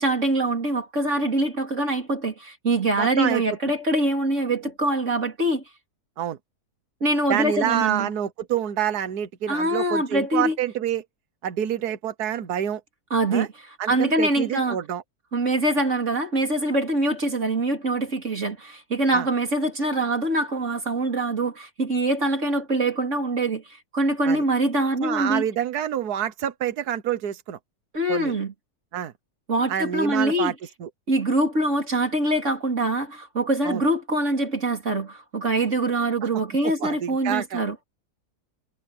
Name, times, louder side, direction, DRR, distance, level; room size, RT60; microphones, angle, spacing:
voice 1, 0.0-5.6 7.0-8.1 9.5-10.6 13.1-13.5 13.9-14.8 15.3-25.4 27.9-28.5 29.5-30.5 31.1-37.8, right 1 dB, 50° right, 3.9 m, -24 dB
voice 2, 3.0-3.6 6.2-6.4 7.3-11.0 11.4-12.8 13.3-13.5 13.8-15.0 19.1-19.3 24.3-24.4 25.0-27.6 28.1-28.3 28.9-29.1 29.7-30.5 30.8-30.9 33.6-33.8 36.6-37.6, right 10 dB, 80° right, 1.6 m, -27 dB
omnidirectional pair, 1.7 m